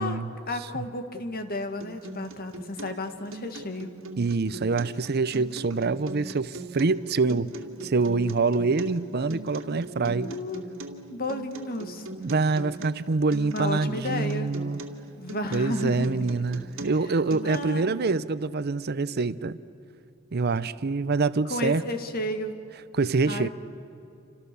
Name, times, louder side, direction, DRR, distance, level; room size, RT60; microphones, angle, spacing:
voice 1, 0.5-4.0 10.0-10.6 11.1-12.0 13.5-14.5 15.2-16.1 17.4-18.1 21.5-22.5 23.3-23.5, left 1 dB, 50° left, 1.9 m, -32 dB
Acoustic guitar, 1.8-17.8, right 2 dB, 75° right, 2.3 m, -40 dB
voice 2, 4.2-7.5 7.8-10.3 12.1-14.8 15.5-19.6 20.3-21.8 22.9-23.5, right 3 dB, 50° right, 0.6 m, -25 dB
29.0 x 26.5 x 6.9 m
head